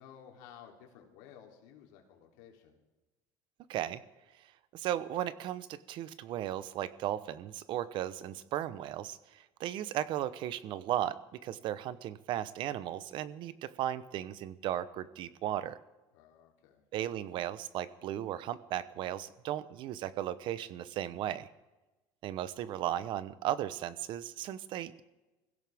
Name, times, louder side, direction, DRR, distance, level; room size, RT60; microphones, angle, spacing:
voice 1, 0.0-2.8 16.1-16.8, left 8 dB, 90° left, 1 dB, 3.3 m, -55 dB
voice 2, 3.7-4.0 4.7-15.8 16.9-21.5 22.2-25.0, right 12 dB, 60° right, 14 dB, 1.0 m, -36 dB
24.0 x 16.0 x 3.6 m, 1.1 s
cardioid pair, 120°, 9 cm